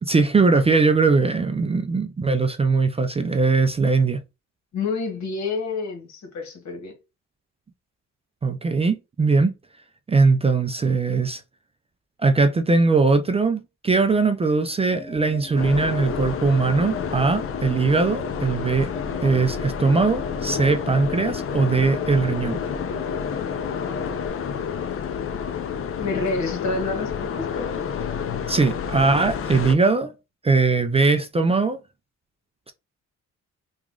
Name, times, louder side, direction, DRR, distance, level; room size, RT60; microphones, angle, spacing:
voice 1, 0.0-4.2 8.4-9.5 10.1-11.4 12.2-18.9 19.2-22.6 28.5-30.1 30.4-31.8, right 4 dB, 20° right, 0.4 m, -20 dB
voice 2, 4.7-6.9 26.0-27.8, left 3 dB, 65° left, 1.5 m, -28 dB
sound 1, 14.9-24.3, left 2 dB, 10° left, 1.9 m, -39 dB
sound 2, 15.6-29.7, left 7 dB, 45° left, 0.5 m, -29 dB
2.9 x 2.4 x 3.7 m
cardioid pair, 90°, 30 cm